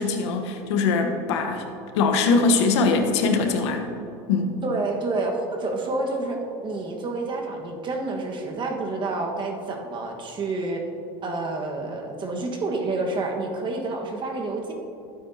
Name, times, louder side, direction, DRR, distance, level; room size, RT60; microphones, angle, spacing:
voice 1, 0.0-1.6 1.9-3.8 4.3-4.6, left 4 dB, 85° left, 5 dB, 1.1 m, -22 dB
voice 2, 4.6-10.8 11.2-14.7, right 2 dB, 35° right, 2 dB, 1.5 m, -29 dB
12.0 x 9.2 x 2.8 m, 2.8 s
supercardioid pair, 105°, 14 cm